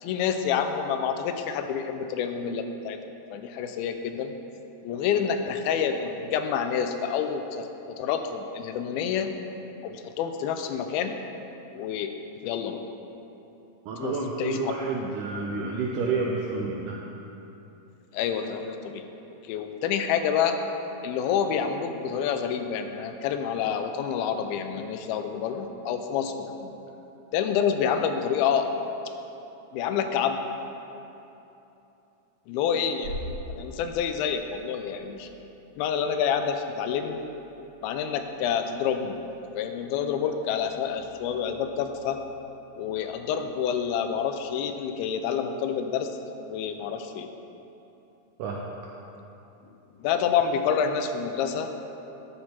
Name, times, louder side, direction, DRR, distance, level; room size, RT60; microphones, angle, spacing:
voice 1, 0.0-3.0 3.3-4.3 4.8-9.4 9.8-11.2 11.7-12.1 12.4-12.8 14.0-14.7 18.1-19.0 19.4-20.6 21.0-26.8 27.3-28.7 29.7-30.4 32.5-33.2 33.5-35.3 35.8-37.3 37.8-39.2 39.5-42.2 42.8-46.1 46.5-47.3 50.0-51.7, left 7 dB, 85° left, 7 dB, 2.4 m, -28 dB
voice 2, 13.9-17.0 48.4-48.6, right 4 dB, 90° right, -1 dB, 1.8 m, -29 dB
sound 1, 32.9-44.3, equal, 60° right, 3.6 m, -46 dB
12.0 x 6.6 x 4.3 m, 3.0 s
omnidirectional pair, 4.4 m